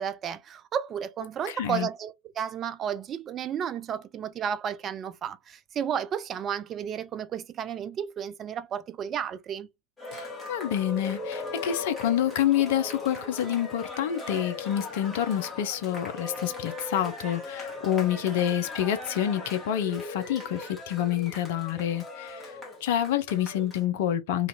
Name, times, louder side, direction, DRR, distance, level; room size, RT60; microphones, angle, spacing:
voice 1, 0.0-9.7, right 8 dB, 25° right, 0.3 m, -32 dB
voice 2, 1.5-1.9 10.1-22.5 22.8-24.5, left 10 dB, 50° left, 0.4 m, -28 dB
Cheering, 10.0-23.8, left 3 dB, 10° left, 1.0 m, -39 dB
2.5 x 2.2 x 2.7 m
figure-of-eight pair, 90°, 0 cm